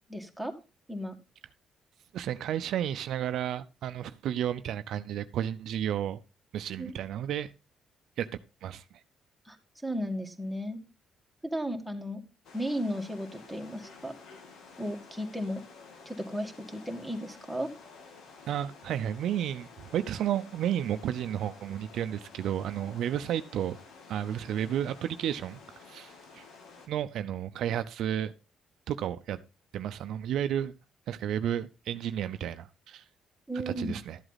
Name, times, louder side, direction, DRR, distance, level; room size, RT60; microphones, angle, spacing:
voice 1, 0.1-0.6 0.9-1.2 6.8-6.9 9.5-9.6 9.8-10.8 11.4-12.2 12.5-14.1 14.8-15.6 16.1-17.7 33.5-34.0, equal, ahead, 2.1 m, -34 dB
voice 2, 2.1-6.2 6.5-7.5 8.2-8.3 8.6-8.8 18.5-23.8 24.1-25.6 25.9-26.4 26.9-28.3 28.9-29.4 29.7-30.7 31.1-33.0 33.7-34.2, right 10 dB, 80° right, 0.6 m, -32 dB
sound 1, 12.4-26.9, left 4 dB, 80° left, 2.3 m, -52 dB
12.5 x 7.9 x 4.1 m
cardioid pair, 90°, 0 cm